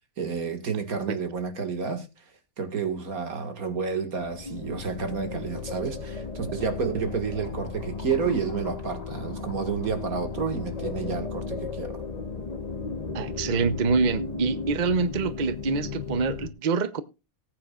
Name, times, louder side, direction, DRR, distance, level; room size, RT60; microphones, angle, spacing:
voice 1, 0.2-2.2 2.6-12.0, right 5 dB, 85° right, 2.3 m, -30 dB
sound 1, 4.1-16.5, left 4 dB, 30° left, 1.1 m, -35 dB
voice 2, 13.1-17.0, right 4 dB, 40° right, 0.9 m, -26 dB
19.0 x 8.9 x 2.4 m
omnidirectional pair, 1.5 m